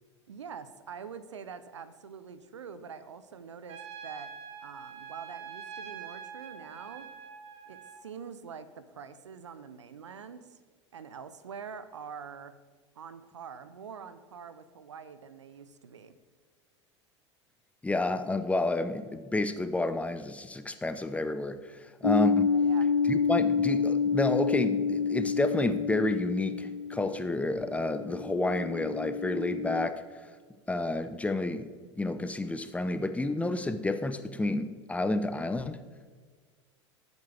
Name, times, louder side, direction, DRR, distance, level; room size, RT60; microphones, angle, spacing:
voice 1, 0.3-4.3 4.6-7.1 7.7-10.6 10.9-12.6 13.0-16.2 22.6-22.9, right 6 dB, 75° right, 13 dB, 0.7 m, -45 dB
Trumpet, 3.7-8.0, right 7 dB, 40° right, 1.6 m, -45 dB
voice 2, 17.8-22.6 23.1-30.0 30.7-35.8, left 2 dB, 10° left, 10 dB, 0.7 m, -30 dB
sound 1, 22.0-29.9, left 5 dB, 90° left, 0.5 m, -29 dB
19.0 x 8.3 x 3.5 m, 1.5 s
figure-of-eight pair, 80°, 15 cm